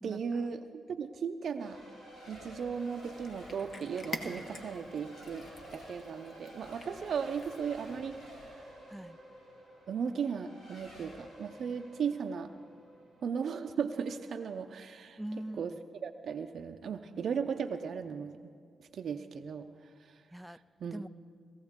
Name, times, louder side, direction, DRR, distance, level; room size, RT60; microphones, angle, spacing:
voice 1, 0.0-1.8 2.3-5.5 5.7-8.7 9.9-12.5 13.2-15.2 15.6-15.7 16.0-18.4 18.9-19.7 20.0-20.2 20.5-21.1, right 6 dB, 70° right, 6 dB, 0.5 m, -36 dB
Race car auto racing / Accelerating revving vroom / Mechanisms, 1.6-14.1, equal, 85° left, 4.6 m, -51 dB
Cat, 2.8-8.0, left 2 dB, 55° left, 1.3 m, -47 dB
voice 2, 15.2-15.7 20.3-20.6 20.9-21.1, right 1 dB, 5° right, 15 dB, 0.3 m, -41 dB
19.5 x 14.5 x 3.6 m, 2.3 s
cardioid pair, 65°, 0 cm